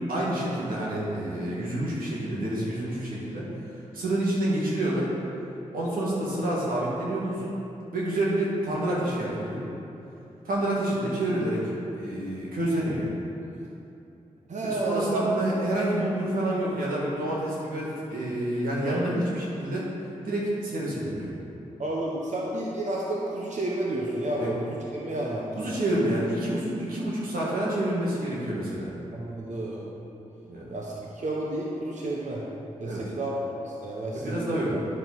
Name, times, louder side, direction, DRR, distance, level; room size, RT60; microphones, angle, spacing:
voice 1, 0.1-3.4 3.9-5.1 5.7-7.5 7.9-9.6 10.4-11.6 11.9-13.1 14.9-19.8 20.2-21.3 24.4-24.5 25.6-28.9 30.5-30.7 32.8-33.0 34.1-34.8, right 1 dB, 90° right, -6 dB, 1.9 m, -28 dB
voice 2, 14.5-15.3 18.8-19.0 21.8-25.8 29.1-29.9 30.7-32.4 32.8-34.6, right 1 dB, 55° right, -3 dB, 1.1 m, -31 dB
9.4 x 6.9 x 4.1 m, 2.8 s
supercardioid pair, 40°, 14 cm